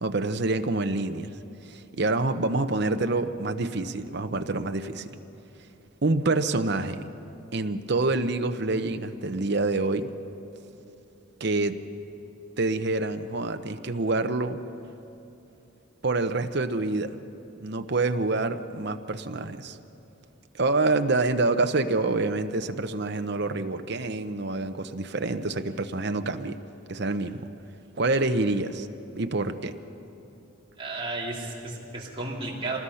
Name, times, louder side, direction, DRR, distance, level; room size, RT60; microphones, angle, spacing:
voice 1, 0.0-1.3 1.7-5.1 6.0-7.0 7.5-10.1 11.4-11.8 12.6-14.6 16.0-17.2 17.6-19.8 20.5-26.6 26.9-27.5 28.0-28.9 29.1-29.8, right 2 dB, 55° right, 8 dB, 0.8 m, -27 dB
voice 2, 30.8-32.8, right 2 dB, 25° right, -5 dB, 3.3 m, -33 dB
25.5 x 19.5 x 5.7 m, 2.9 s
head